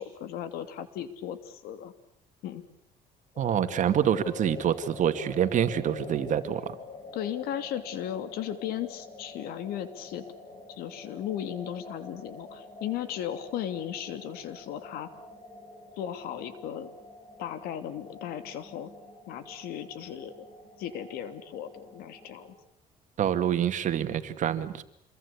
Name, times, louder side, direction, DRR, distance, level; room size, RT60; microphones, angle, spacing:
voice 1, 0.0-1.9 2.4-2.6 7.1-10.2 10.7-15.1 16.0-16.9 17.4-18.9 19.3-20.3 20.8-22.5, left 10 dB, 80° left, 11 dB, 2.8 m, -36 dB
sound 1, 3.3-22.6, left 3 dB, 40° left, 7.4 m, -46 dB
voice 2, 3.4-6.6 23.2-24.8, right 9 dB, 55° right, 9 dB, 2.3 m, -26 dB
27.5 x 22.5 x 8.4 m, 0.69 s
cardioid pair, 100°, 15 cm